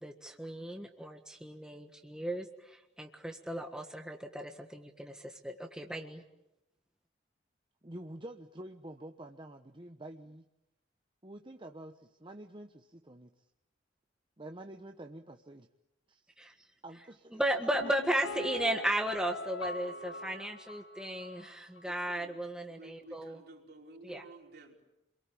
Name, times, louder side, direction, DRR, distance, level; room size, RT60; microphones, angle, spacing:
voice 1, 0.0-6.2 16.4-16.5 17.3-23.4 24.0-24.2, right 1 dB, 5° right, 3 dB, 1.5 m, -35 dB
voice 2, 7.8-10.5 11.2-13.5 14.4-15.7 16.1-16.3 16.8-17.8, right 1 dB, 25° right, 5 dB, 1.1 m, -48 dB
Piano, 17.7-21.5 21.8-21.9, left 2 dB, 70° left, 1.6 m, -42 dB
voice 3, 21.9-22.4 22.7-24.8, right 2 dB, 55° right, 1 dB, 4.9 m, -53 dB
28.5 x 23.0 x 8.6 m, 0.89 s
head